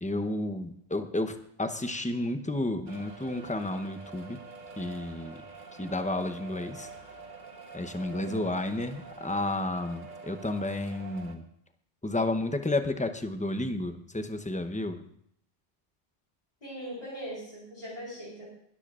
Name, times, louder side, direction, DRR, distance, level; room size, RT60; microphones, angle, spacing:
voice 1, 0.0-4.4 4.8-5.4 5.8-6.9 7.7-11.4 12.0-15.0, left 2 dB, 10° left, 8 dB, 0.7 m, -31 dB
sound 1, 2.9-11.4, right 4 dB, 50° right, 1.3 m, -46 dB
voice 2, 8.1-8.5 16.6-18.5, equal, 40° left, -7 dB, 4.4 m, -40 dB
20.5 x 13.5 x 2.5 m, 0.69 s
omnidirectional pair, 1.1 m